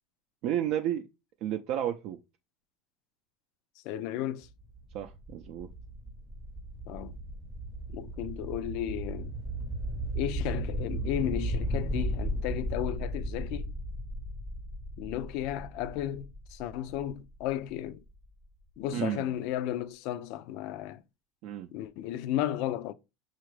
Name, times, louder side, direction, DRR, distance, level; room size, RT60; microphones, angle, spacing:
voice 1, 0.4-1.0 1.4-2.2 4.9-5.7 18.9-19.3 21.4-21.7, right 11 dB, 60° right, 0.4 m, -32 dB
voice 2, 3.8-4.5 6.9-7.2 7.9-9.3 10.1-13.7 15.0-18.0 18.8-21.0 21.7-22.9, left 12 dB, 65° left, 0.4 m, -34 dB
sound 1, 4.4-18.2, right 1 dB, 5° right, 0.6 m, -36 dB
5.8 x 2.4 x 3.2 m
supercardioid pair, 115°, 0 cm